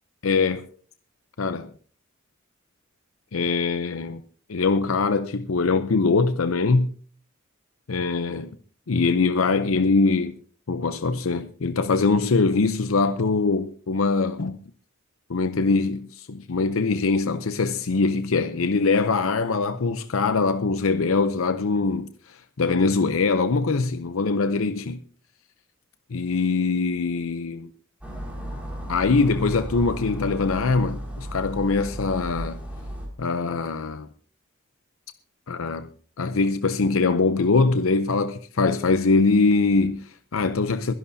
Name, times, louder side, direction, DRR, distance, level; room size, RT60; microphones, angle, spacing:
voice 1, 0.2-0.7 1.4-1.7 3.3-4.2 4.5-6.9 7.9-8.5 8.9-10.4 10.7-14.6 15.3-25.0 26.1-27.7 28.9-32.6 33.2-34.1 35.5-35.9 36.2-40.9, left 4 dB, 80° left, 0.7 m, -23 dB
sound 1, 28.0-33.1, equal, 5° right, 4.9 m, -34 dB
22.5 x 11.0 x 2.7 m
head